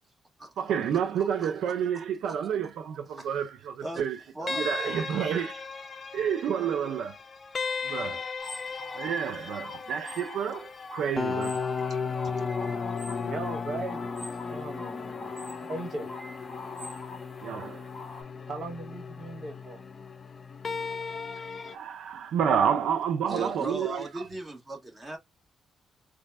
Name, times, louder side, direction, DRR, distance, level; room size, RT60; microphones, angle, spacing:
voice 1, 0.6-4.2 4.5-5.6 6.1-7.2 7.8-8.2 8.9-11.6 17.4-17.9 21.7-24.2, right 8 dB, 90° right, 0.5 m, -29 dB
voice 2, 1.2-1.5 1.9-2.4 3.1-3.3 3.8-4.0 4.3-4.7 23.3-25.2, right 1 dB, 25° right, 1.6 m, -38 dB
sound 1, 4.5-21.8, left 5 dB, 40° left, 0.5 m, -35 dB
sound 2, 8.4-18.2, left 2 dB, ahead, 2.4 m, -44 dB
voice 3, 13.2-14.1 14.4-15.3 15.6-16.1 18.4-19.8, right 2 dB, 50° right, 1.5 m, -38 dB
4.0 x 2.3 x 2.3 m
cardioid pair, 105°, 0 cm